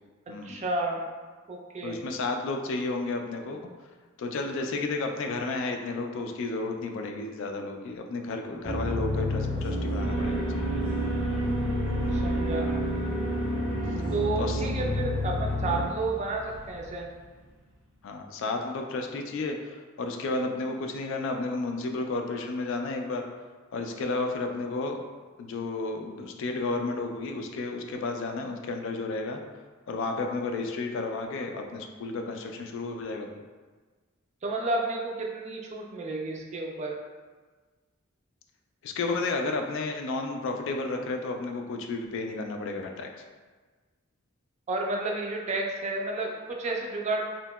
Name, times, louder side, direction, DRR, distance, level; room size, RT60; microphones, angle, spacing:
voice 1, 0.4-1.1 1.5-2.0 12.1-12.7 14.1-17.1 34.4-37.0 44.7-47.3, right 2 dB, 35° right, 0 dB, 0.3 m, -31 dB
voice 2, 1.8-3.6 4.2-10.4 14.4-14.6 18.0-23.2 23.7-25.0 25.4-29.4 29.9-33.3 38.8-43.1, left 3 dB, 60° left, 4 dB, 0.3 m, -32 dB
sound 1, 8.6-15.8, left 1 dB, 25° left, 0.6 m, -30 dB
Alarm, 10.0-17.1, right 2 dB, 80° right, 0.6 m, -34 dB
2.8 x 2.7 x 2.2 m, 1.4 s
head